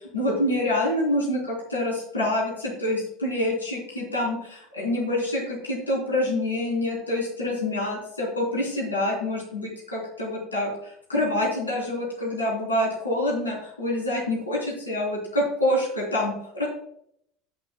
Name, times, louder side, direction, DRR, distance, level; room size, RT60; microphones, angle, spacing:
voice 1, 0.0-16.7, left 1 dB, 90° left, -3 dB, 3.7 m, -26 dB
16.5 x 6.1 x 2.3 m, 0.69 s
figure-of-eight pair, 70°, 0 cm